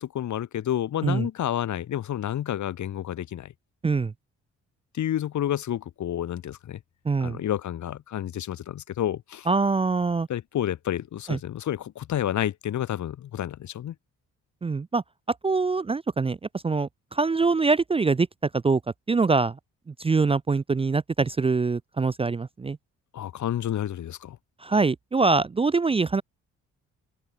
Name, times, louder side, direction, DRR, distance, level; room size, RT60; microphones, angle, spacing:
voice 1, 0.0-3.5 4.9-6.8 7.2-9.5 10.3-13.9 23.1-24.4, left 11 dB, 70° left, 5.5 m, -30 dB
voice 2, 7.1-7.4 9.5-10.3 11.3-11.4 14.6-15.0 15.4-16.4 16.6-18.3 18.6-18.8 19.1-19.5 20.0-22.8 24.6-26.2, right 4 dB, 20° right, 0.5 m, -23 dB
open air
cardioid pair, 90°, 30 cm